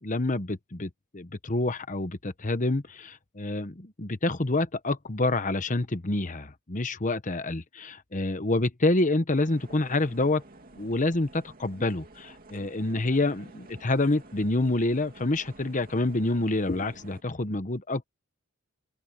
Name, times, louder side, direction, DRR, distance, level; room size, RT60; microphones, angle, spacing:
voice 1, 0.0-10.4 10.8-18.1, left 2 dB, 35° left, 1.1 m, -27 dB
sound 1, 9.3-17.2, right 2 dB, 40° right, 2.7 m, -51 dB
head